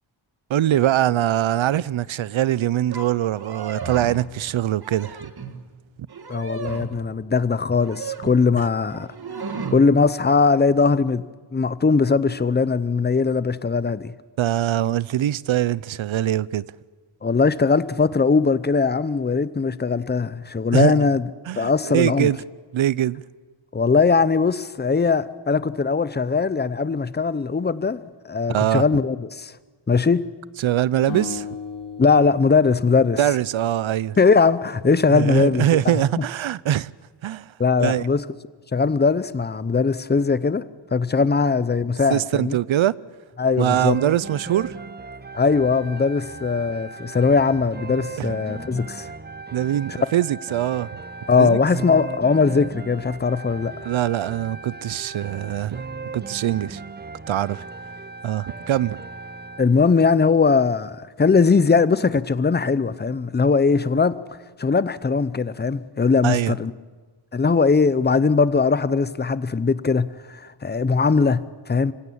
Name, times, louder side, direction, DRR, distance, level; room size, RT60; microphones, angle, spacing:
voice 1, 0.5-5.3 14.4-16.6 20.7-21.0 21.5-22.4 22.7-23.2 28.5-28.8 30.6-31.5 33.2-34.1 35.1-36.9 37.2-37.4 37.8-38.1 42.1-42.9 43.6-44.8 48.2-48.3 49.5-50.9 51.4-51.6 53.8-55.8 56.1-56.8 57.3-57.6 58.2-59.0 66.2-66.5, right 12 dB, 75° right, 0.6 m, -22 dB
sound 1, 2.9-3.1 3.3-4.3 4.7-5.6 6.1-7.0 7.7-8.5 8.9-9.8, right 5 dB, 50° right, 1.7 m, -34 dB
voice 2, 6.3-9.1 9.7-11.2 11.5-14.1 17.2-21.3 21.6-22.3 23.7-29.6 29.9-30.2 32.0-33.2 34.2-36.2 37.6-38.3 38.7-40.6 40.9-42.6 43.4-44.0 45.3-49.1 51.3-53.9 59.6-66.7 67.3-71.9, left 4 dB, 20° left, 0.6 m, -20 dB
sound 2, 31.1-34.3, left 6 dB, 55° left, 4.1 m, -36 dB
sound 3, 43.7-59.7, right 4 dB, 20° right, 0.7 m, -37 dB
25.5 x 16.5 x 8.5 m
wide cardioid pair, 135°, 48 cm